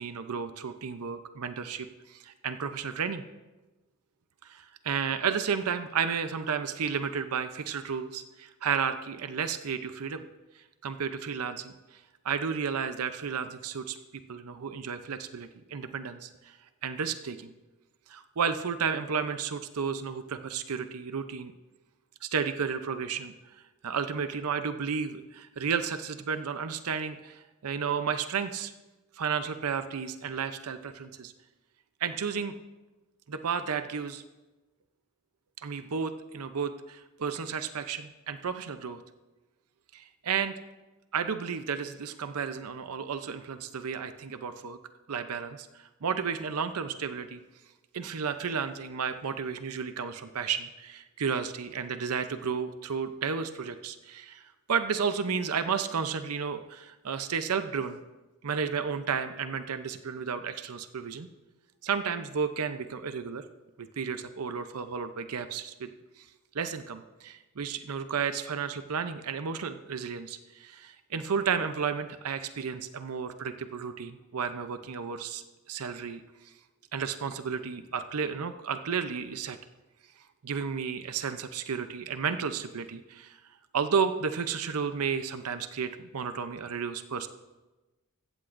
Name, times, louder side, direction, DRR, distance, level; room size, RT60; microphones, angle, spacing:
voice 1, 0.0-3.2 4.4-10.2 10.8-14.0 14.3-16.5 16.8-17.5 18.1-21.5 22.2-23.3 23.8-28.7 29.2-31.3 32.0-32.6 33.3-34.2 35.6-39.0 39.9-40.5 41.1-44.8 45.1-47.4 47.9-54.4 54.7-58.0 58.4-61.3 61.8-63.4 63.8-65.9 66.2-66.3 66.5-76.2 76.9-79.6 80.4-83.4 83.7-87.3, right 6 dB, 80° right, 9 dB, 0.6 m, -32 dB
15.5 x 14.5 x 2.6 m, 1.1 s
head